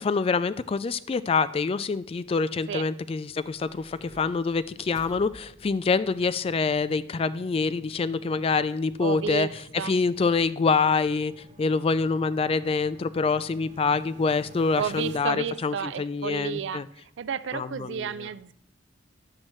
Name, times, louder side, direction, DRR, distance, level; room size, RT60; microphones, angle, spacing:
voice 1, 0.0-9.5 9.7-11.3 11.6-16.9 17.5-18.1, left 4 dB, 30° left, 15 dB, 0.3 m, -26 dB
sound 1, 3.1-15.2, right 1 dB, 40° right, 0.8 m, -51 dB
voice 2, 9.0-9.9 14.8-16.8 17.2-18.5, right 7 dB, 70° right, 16 dB, 0.4 m, -32 dB
10.5 x 7.5 x 3.1 m, 0.71 s
head